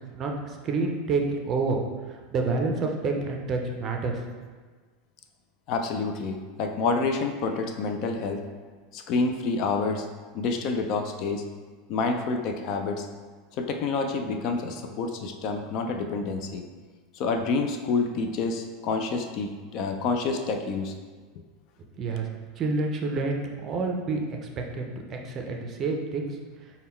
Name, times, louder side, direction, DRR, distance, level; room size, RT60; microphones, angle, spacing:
voice 1, 0.6-1.8 2.3-4.2 22.0-22.2 22.6-24.4 24.7-24.8 25.1-26.3, right 3 dB, 30° right, 2 dB, 0.5 m, -28 dB
voice 2, 5.7-8.4 8.9-10.1 10.3-11.4 11.9-13.1 13.6-16.6 17.1-20.9, left 4 dB, 45° left, 5 dB, 0.3 m, -28 dB
3.6 x 2.2 x 4.3 m, 1.5 s
supercardioid pair, 145°, 0 cm